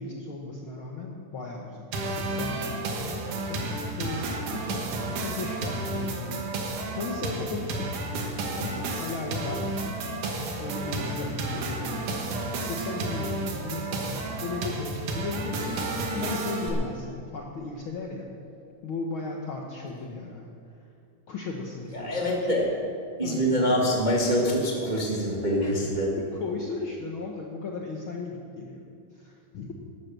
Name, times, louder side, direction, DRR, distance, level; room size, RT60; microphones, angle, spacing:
voice 1, 0.0-3.6 4.0-7.9 8.5-9.8 10.6-12.3 12.6-15.8 16.1-18.3 18.8-20.5 21.3-22.6 23.2-23.6 25.6-28.8 29.1-29.7, left 3 dB, 60° left, 0 dB, 1.4 m, -36 dB
sound 1, 1.9-16.7, right 2 dB, 80° right, 3.0 m, -32 dB
voice 2, 21.9-22.6 23.2-26.2, equal, 20° right, -3 dB, 1.2 m, -25 dB
12.5 x 12.0 x 6.8 m, 2.4 s
omnidirectional pair, 3.5 m